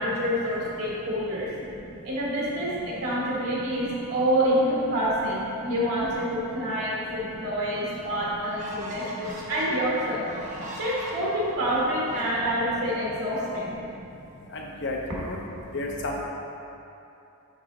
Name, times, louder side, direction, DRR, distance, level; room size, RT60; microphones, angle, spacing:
voice 1, 0.0-1.5 2.0-10.3 10.8-13.8, equal, 75° right, -6 dB, 1.4 m, -27 dB
sound 1, 7.3-7.4 7.9-12.9, right 1 dB, 35° right, 1.0 m, -42 dB
voice 2, 14.5-15.0 15.2-15.4 15.7-16.2, left 2 dB, 55° left, -1 dB, 0.8 m, -31 dB
6.3 x 4.6 x 3.8 m, 2.9 s
head